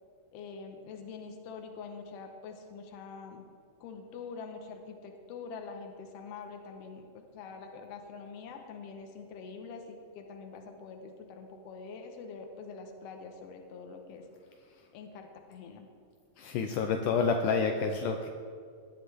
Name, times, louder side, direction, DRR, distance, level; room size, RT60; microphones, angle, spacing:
voice 1, 0.3-3.5 3.8-14.2 14.9-15.9, left 5 dB, 60° left, 4 dB, 1.8 m, -45 dB
voice 2, 16.4-18.3, left 5 dB, 75° left, 4 dB, 2.0 m, -28 dB
18.0 x 11.0 x 3.5 m, 2.3 s
omnidirectional pair, 4.0 m